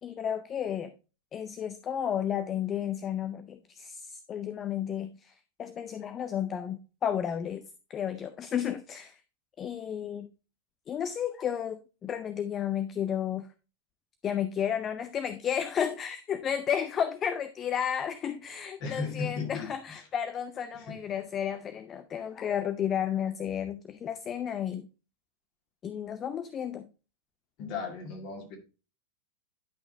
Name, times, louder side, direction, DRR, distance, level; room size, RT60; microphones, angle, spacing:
voice 1, 0.0-0.9 1.3-9.2 9.6-10.3 10.9-13.5 14.2-24.9 25.8-26.9, left 9 dB, 25° left, 0.5 m, -32 dB
voice 2, 18.8-19.7 20.7-21.0 27.6-28.6, left 4 dB, 40° left, 2.4 m, -35 dB
10.5 x 5.9 x 2.7 m
figure-of-eight pair, 90°, 0 cm